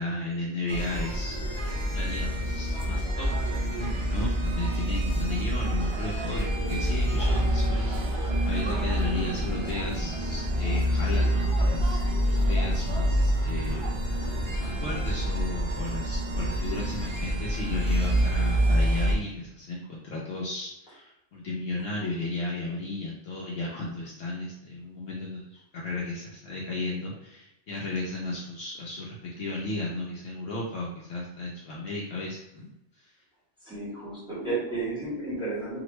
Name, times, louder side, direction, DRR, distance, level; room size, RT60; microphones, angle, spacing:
voice 1, 0.0-1.3 1.9-14.3 14.6-32.7 33.0-33.1, left 2 dB, 65° left, -4 dB, 0.9 m, -34 dB
sound 1, 0.7-19.1, equal, 40° right, 0.4 m, -27 dB
voice 2, 33.6-35.8, right 3 dB, 5° right, -9 dB, 1.4 m, -32 dB
3.0 x 2.5 x 3.1 m, 0.86 s
omnidirectional pair, 1.2 m